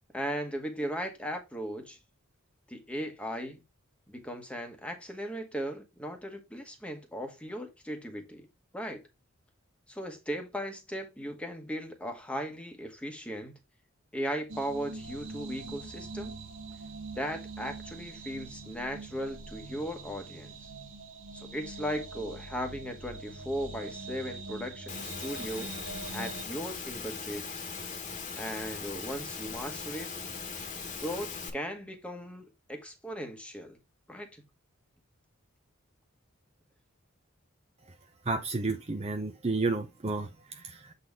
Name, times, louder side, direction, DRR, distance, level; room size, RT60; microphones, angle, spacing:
voice 1, 0.1-2.0 2.7-3.6 4.1-8.5 8.7-9.0 9.9-13.6 14.1-16.3 17.1-20.7 21.3-25.7 26.1-27.7 28.3-30.1 31.0-33.8 34.1-34.4, equal, 5° left, 1.1 m, -37 dB
sound 1, 14.5-26.4, right 3 dB, 60° right, 1.2 m, -43 dB
Engine / Mechanisms, 24.9-31.5, left 5 dB, 35° left, 1.3 m, -39 dB
voice 2, 38.2-40.9, right 3 dB, 30° right, 0.6 m, -32 dB
7.6 x 4.1 x 3.5 m
head